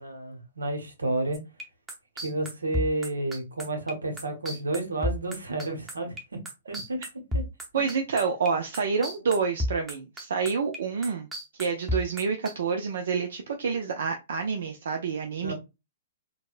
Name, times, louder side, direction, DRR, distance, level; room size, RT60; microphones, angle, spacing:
voice 1, 0.0-1.4 2.2-6.2 6.7-7.0 15.4-15.5, right 2 dB, 90° right, 1.0 m, -30 dB
sound 1, 1.3-8.5 8.7-12.5, left 1 dB, 10° right, 0.8 m, -32 dB
voice 2, 7.7-11.3 11.6-15.5, right 5 dB, 70° right, 0.4 m, -28 dB
4.0 x 2.1 x 2.4 m
hypercardioid pair, 125°, 0 cm